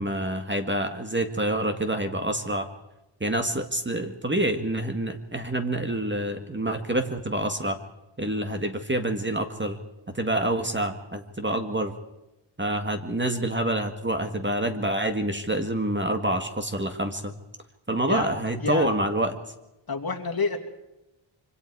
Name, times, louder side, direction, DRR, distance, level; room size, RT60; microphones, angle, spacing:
voice 1, 0.0-2.7 3.2-7.8 8.2-9.8 10.1-11.9 12.6-17.3 17.9-19.4, right 1 dB, 20° right, 6 dB, 1.9 m, -27 dB
voice 2, 19.9-20.6, left 4 dB, 45° left, 2 dB, 2.7 m, -28 dB
26.0 x 25.0 x 4.8 m, 0.94 s
wide cardioid pair, 110°, 49 cm